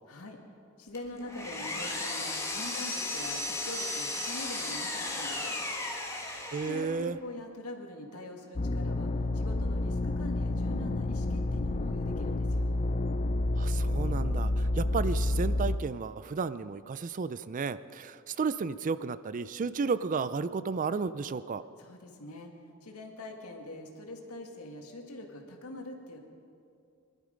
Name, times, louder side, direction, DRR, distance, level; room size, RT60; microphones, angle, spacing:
voice 1, 0.1-0.4 0.8-5.5 6.6-12.8 21.8-22.5 22.8-26.2, left 1 dB, 85° left, 3 dB, 1.9 m, -44 dB
Power tool, 0.9-7.0, left 2 dB, 15° left, 1.6 m, -35 dB
voice 2, 6.5-7.2 13.6-21.6, right 5 dB, 35° right, 15 dB, 0.4 m, -33 dB
sound 1, 8.6-15.8, left 2 dB, 30° left, 0.5 m, -29 dB
21.5 x 12.0 x 5.2 m, 2.5 s
head